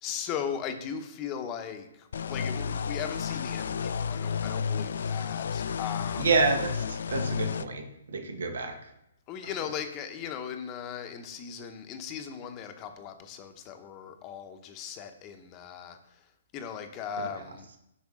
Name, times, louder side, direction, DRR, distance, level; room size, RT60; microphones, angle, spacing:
voice 1, 0.0-6.3 9.3-16.2 16.5-17.7, left 8 dB, 25° left, 6 dB, 0.8 m, -38 dB
sound 1, 2.1-7.6, left 6 dB, 70° left, 0.3 m, -31 dB
voice 2, 6.2-8.8 17.2-17.3, right 4 dB, 80° right, 6 dB, 1.2 m, -28 dB
8.3 x 5.9 x 3.7 m, 0.84 s
hypercardioid pair, 150°, 0 cm